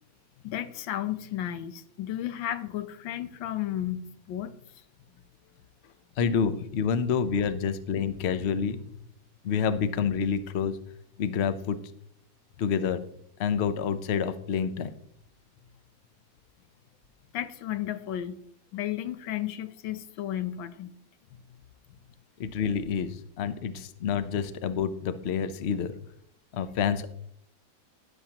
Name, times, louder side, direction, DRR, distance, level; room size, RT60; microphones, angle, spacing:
voice 1, 0.4-4.5 17.3-18.4 18.7-20.9 21.3-21.4, left 12 dB, 85° left, 12 dB, 1.5 m, -33 dB
voice 2, 6.2-8.8 9.4-10.8 11.2-11.8 12.6-13.0 13.4-14.9 22.4-25.9 26.5-27.1, left 7 dB, 55° left, 12 dB, 0.7 m, -28 dB
13.0 x 11.0 x 2.9 m, 0.72 s
omnidirectional pair, 2.1 m